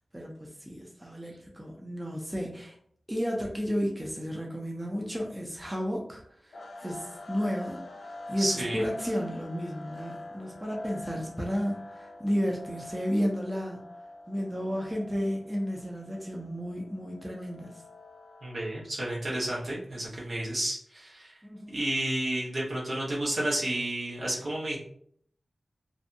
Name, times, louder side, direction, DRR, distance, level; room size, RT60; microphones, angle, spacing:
voice 1, 0.1-2.7 3.1-7.8 8.3-13.8 14.3-17.8 21.4-21.8, equal, 10° right, -1 dB, 0.4 m, -32 dB
sound 1, 6.5-18.9, left 2 dB, 80° left, 0.3 m, -46 dB
voice 2, 8.4-8.9 18.4-21.3 21.7-24.8, right 1 dB, 70° right, -5 dB, 0.9 m, -31 dB
2.5 x 2.1 x 2.6 m, 0.62 s
wide cardioid pair, 90°, 0 cm